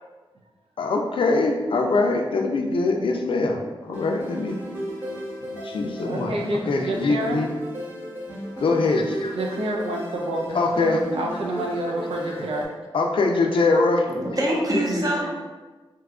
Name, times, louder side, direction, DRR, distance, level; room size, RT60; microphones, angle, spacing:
voice 1, 0.8-4.6 5.5-6.4 6.7-7.5 8.6-9.4 10.5-11.0 12.3-12.4 12.9-14.2, left 3 dB, 60° left, 2 dB, 0.4 m, -23 dB
sound 1, 3.9-12.6, equal, 20° right, 1.0 m, -35 dB
voice 2, 6.0-7.4 9.3-10.4 10.8-12.7, right 1 dB, 80° right, -1 dB, 0.6 m, -28 dB
voice 3, 14.1-15.3, equal, 40° right, -3 dB, 0.7 m, -24 dB
2.9 x 2.3 x 3.5 m, 1.3 s
wide cardioid pair, 155°, 10 cm